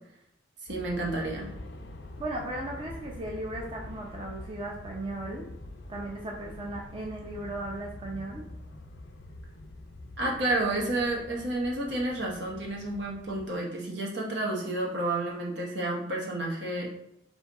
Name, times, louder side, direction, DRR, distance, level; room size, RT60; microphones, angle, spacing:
Aircraft, 0.7-13.5, left 2 dB, 70° left, 0.5 m, -45 dB
voice 1, 0.7-1.5 10.2-16.9, right 2 dB, 70° right, -2 dB, 1.0 m, -30 dB
voice 2, 2.2-5.5 5.9-8.4, right 1 dB, 30° right, -2 dB, 0.6 m, -36 dB
4.4 x 2.7 x 3.4 m, 0.79 s
head